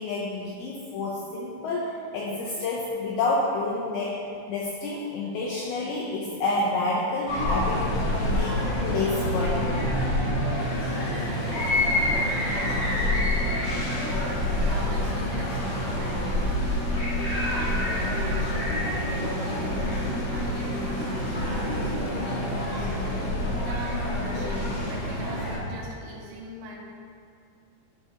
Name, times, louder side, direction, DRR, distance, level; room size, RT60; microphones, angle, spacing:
voice 1, 0.0-4.2 4.5-7.8 8.2-9.6, left 2 dB, 90° left, -4 dB, 2.2 m, -29 dB
sound 1, 7.3-25.6, left 1 dB, 55° left, 1.7 m, -27 dB
voice 2, 10.5-16.8 17.3-22.9 23.6-26.8, right 1 dB, 85° right, -2 dB, 3.4 m, -41 dB
10.5 x 4.6 x 3.7 m, 2.4 s
omnidirectional pair, 5.3 m